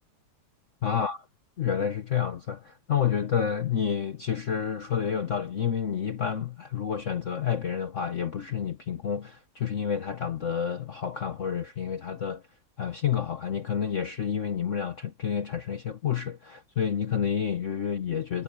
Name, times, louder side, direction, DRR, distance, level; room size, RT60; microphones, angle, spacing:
voice 1, 0.8-1.3 1.6-12.4 12.8-18.4, left 8 dB, 50° left, 1.0 m, -29 dB
omnidirectional pair, 2.1 m